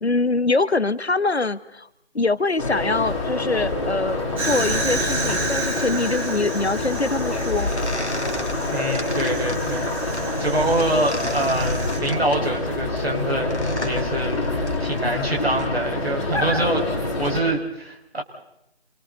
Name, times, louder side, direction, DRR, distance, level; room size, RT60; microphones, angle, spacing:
voice 1, 0.0-1.9 2.1-7.7, left 3 dB, 70° left, 16 dB, 1.3 m, -24 dB
sound 1, 2.6-17.4, left 2 dB, 30° left, 7.9 m, -26 dB
Fire, 4.4-12.0, right 2 dB, 30° right, 7.0 m, -31 dB
sound 2, 7.0-15.7, left 2 dB, 90° left, 2.5 m, -35 dB
voice 2, 8.7-16.9 17.2-18.2, right 1 dB, 65° right, 0 dB, 5.5 m, -25 dB
29.5 x 28.0 x 4.0 m, 0.82 s
figure-of-eight pair, 165°, 33 cm